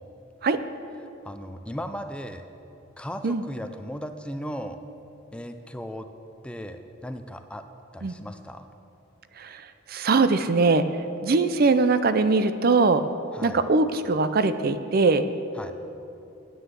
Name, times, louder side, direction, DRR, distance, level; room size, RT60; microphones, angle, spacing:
voice 1, 1.2-2.4 3.0-4.8 5.3-6.1 6.4-7.6 7.9-8.7 13.3-13.6 15.6-15.7, equal, 5° left, 8 dB, 0.4 m, -36 dB
voice 2, 9.9-10.9 11.2-13.1 13.4-15.3, right 3 dB, 50° right, 11 dB, 0.5 m, -21 dB
9.7 x 9.4 x 7.6 m, 2.8 s
head